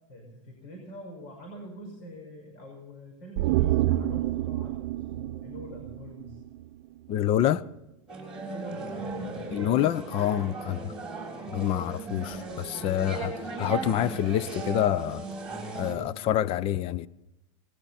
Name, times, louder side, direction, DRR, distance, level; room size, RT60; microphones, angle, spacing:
voice 1, 0.1-6.4 8.5-9.4 10.6-10.9, equal, 50° left, 5.7 m, -45 dB
sound 1, 3.4-6.8 7.1-7.2, right 15 dB, 55° right, 0.6 m, -28 dB
voice 2, 7.1-7.6 9.5-10.8 11.5-15.3 15.7-17.1, left 11 dB, 35° left, 0.6 m, -27 dB
sound 2, 8.1-15.9, right 3 dB, 5° right, 6.2 m, -37 dB
19.5 x 17.0 x 4.3 m
supercardioid pair, 140°, 17 cm